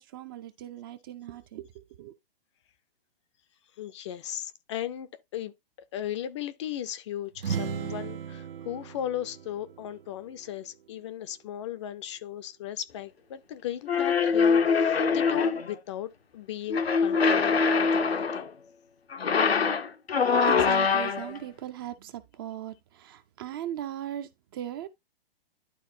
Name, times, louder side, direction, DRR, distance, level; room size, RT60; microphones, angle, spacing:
voice 1, 0.0-2.1 20.4-24.9, right 11 dB, 25° right, 0.4 m, -38 dB
voice 2, 3.8-5.5 5.9-18.5, left 11 dB, 30° left, 0.5 m, -36 dB
sound 1, 7.3-11.1, right 8 dB, 70° right, 0.6 m, -37 dB
sound 2, 13.9-15.7 16.7-18.5 19.1-21.4, left 5 dB, 85° left, 0.9 m, -24 dB
11.5 x 4.1 x 2.6 m
hypercardioid pair, 130°, 30 cm